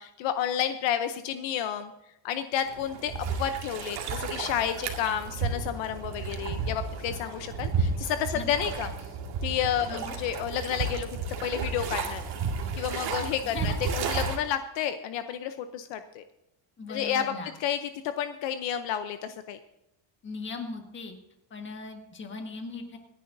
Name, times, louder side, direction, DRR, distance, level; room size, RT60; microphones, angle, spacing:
voice 1, 0.0-1.9 2.2-3.1 3.4-8.9 9.4-11.1 11.4-12.2 12.7-16.2 16.9-17.2 17.6-19.6, left 9 dB, 65° left, 9 dB, 0.8 m, -30 dB
sound 1, 2.7-14.4, right 5 dB, 50° right, 2.1 m, -32 dB
voice 2, 13.4-13.8 16.8-17.5 20.2-21.2 21.5-23.0, left 3 dB, 25° left, 4 dB, 1.6 m, -38 dB
26.5 x 10.0 x 2.7 m, 0.90 s
cardioid pair, 170°, 48 cm